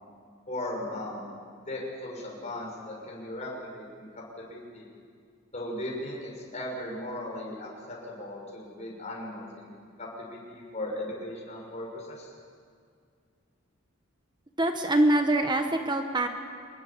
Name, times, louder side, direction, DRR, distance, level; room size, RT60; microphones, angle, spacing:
voice 1, 0.5-1.3 1.7-4.1 4.4-4.9 5.5-9.7 10.0-12.3, left 1 dB, 35° left, -3 dB, 6.5 m, -37 dB
voice 2, 14.6-16.3, right 1 dB, 20° right, 5 dB, 1.3 m, -24 dB
25.5 x 21.0 x 7.5 m, 2.2 s
head